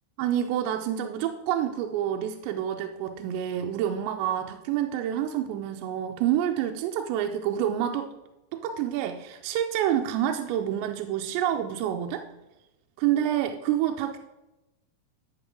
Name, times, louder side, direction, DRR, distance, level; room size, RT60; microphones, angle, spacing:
voice 1, 0.2-8.1 8.5-12.3 13.0-14.2, right 10 dB, 85° right, 5 dB, 2.8 m, -28 dB
11.0 x 7.9 x 3.7 m, 0.99 s
omnidirectional pair, 5.0 m